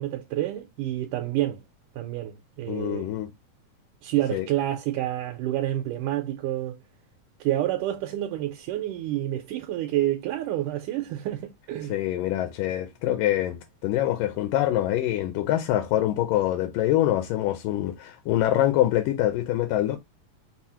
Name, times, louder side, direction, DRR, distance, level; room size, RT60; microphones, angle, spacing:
voice 1, 0.0-1.6 2.0-3.1 4.0-6.8 7.4-12.0, right 13 dB, 80° right, 2.0 m, -28 dB
voice 2, 2.7-3.3 4.3-4.5 11.9-20.0, left 13 dB, 80° left, 2.1 m, -25 dB
6.0 x 2.0 x 4.2 m
omnidirectional pair, 3.9 m